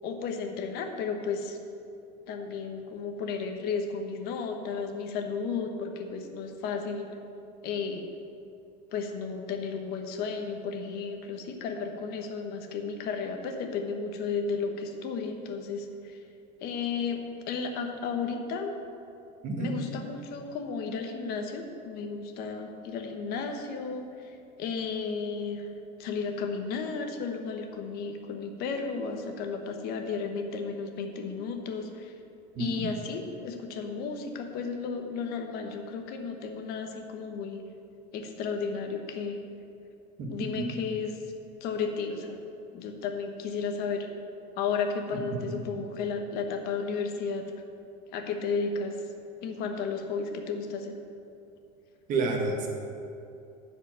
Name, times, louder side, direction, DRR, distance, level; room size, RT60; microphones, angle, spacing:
voice 1, 0.0-1.6 2.3-7.1 7.6-8.0 8.9-16.2 16.6-18.7 19.6-25.7 26.0-32.1 32.6-37.6 38.1-39.4 40.3-41.1 41.6-42.4 42.7-44.1 44.6-47.5 48.1-48.9 49.4-50.9, left 5 dB, 50° left, 4 dB, 1.2 m, -33 dB
voice 2, 32.5-32.9 40.2-40.7 45.1-45.4 52.1-52.7, right 3 dB, 40° right, 0 dB, 1.7 m, -30 dB
11.0 x 5.1 x 7.4 m, 2.6 s
supercardioid pair, 150°, 21 cm